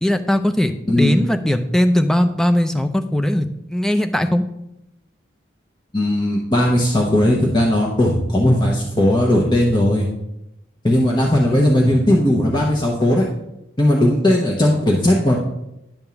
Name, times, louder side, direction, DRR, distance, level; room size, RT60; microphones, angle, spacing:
voice 1, 0.0-4.4, left 1 dB, 5° left, 8 dB, 0.4 m, -19 dB
voice 2, 5.9-10.1 10.8-13.3 13.8-15.3, left 1 dB, 25° left, -1 dB, 0.9 m, -17 dB
10.5 x 3.6 x 7.0 m, 0.86 s
head